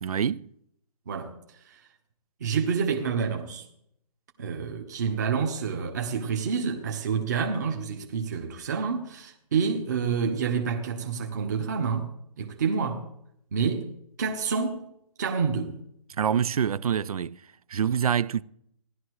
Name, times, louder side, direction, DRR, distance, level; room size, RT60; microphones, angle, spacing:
voice 1, 0.0-0.5 16.1-17.4 17.7-18.4, right 8 dB, 75° right, 0.5 m, -26 dB
voice 2, 1.1-1.8 2.4-3.6 4.4-13.1 13.5-14.9 15.2-15.8, right 6 dB, 30° right, 1.1 m, -28 dB
17.0 x 11.5 x 3.2 m
hypercardioid pair, 175°, 19 cm